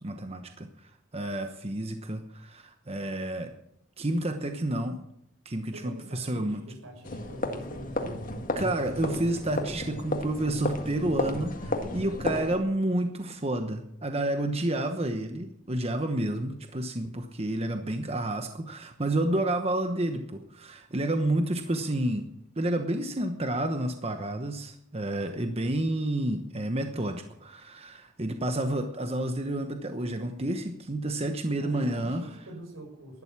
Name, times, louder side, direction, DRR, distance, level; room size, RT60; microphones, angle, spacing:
voice 1, 0.0-3.5 4.0-5.0 5.4-6.6 8.6-22.3 22.6-32.2, right 1 dB, 30° right, 6 dB, 1.0 m, -30 dB
voice 2, 5.7-8.3 21.6-21.9 31.6-33.2, right 1 dB, 85° right, 2 dB, 6.1 m, -45 dB
sound 1, 7.0-12.6, left 1 dB, 40° left, 1.8 m, -33 dB
12.0 x 12.0 x 7.4 m, 0.75 s
head